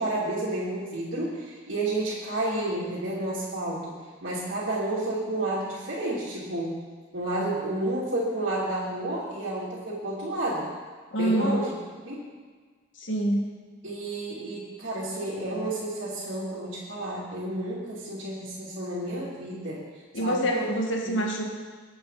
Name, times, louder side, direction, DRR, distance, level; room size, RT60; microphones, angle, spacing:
voice 1, 0.0-3.9 4.2-6.8 7.1-10.7 11.2-11.7 12.0-12.3 13.8-19.8 20.2-20.6 21.0-21.2, right 1 dB, 75° right, -8 dB, 3.2 m, -31 dB
voice 2, 11.1-11.7 13.0-13.5 20.1-21.5, right 1 dB, 75° left, 1 dB, 2.0 m, -26 dB
21.5 x 8.5 x 4.2 m, 1.5 s
head